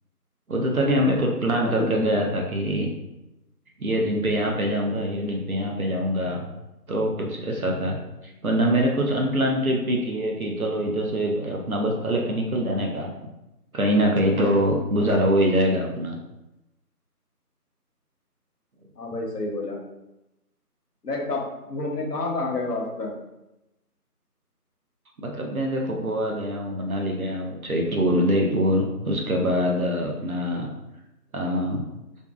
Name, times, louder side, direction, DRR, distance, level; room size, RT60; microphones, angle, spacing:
voice 1, 0.5-2.9 3.8-6.5 6.9-8.0 8.4-13.1 13.7-16.2 25.2-30.7 31.3-31.8, equal, 65° right, 0 dB, 0.5 m, -24 dB
voice 2, 1.6-2.0 19.0-19.8 21.0-23.1, left 2 dB, 80° left, 0 dB, 0.8 m, -29 dB
2.5 x 2.4 x 2.3 m, 0.95 s
figure-of-eight pair, 175°, 47 cm